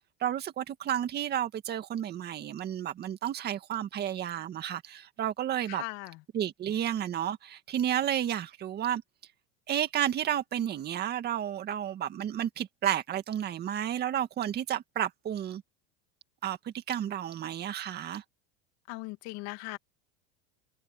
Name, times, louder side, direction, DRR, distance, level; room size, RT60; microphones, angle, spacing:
voice 1, 0.2-5.8 6.3-9.0 9.7-15.6 16.4-18.2, right 10 dB, 30° right, 2.1 m, -31 dB
voice 2, 5.7-6.2 18.9-19.8, left 22 dB, 55° left, 2.4 m, -39 dB
supercardioid pair, 140°, 32 cm